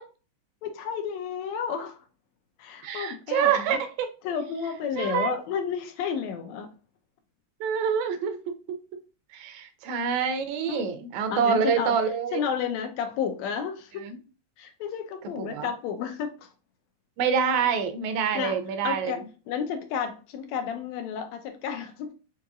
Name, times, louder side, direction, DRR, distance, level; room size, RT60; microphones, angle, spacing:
voice 1, 0.6-2.0 2.6-3.7 4.2-6.7 10.7-10.9 11.3-11.9 12.3-14.0 14.6-16.5 18.4-18.6 18.8-19.2 19.5-22.1, left 7 dB, 80° left, 7 dB, 1.8 m, -31 dB
voice 2, 2.8-4.1 5.0-5.4 7.6-8.4 8.7-8.8 9.3-12.4 14.0-14.2 15.4-15.7 17.2-19.1, right 7 dB, 80° right, 8 dB, 1.8 m, -26 dB
5.3 x 2.9 x 2.4 m, 0.34 s
omnidirectional pair, 3.3 m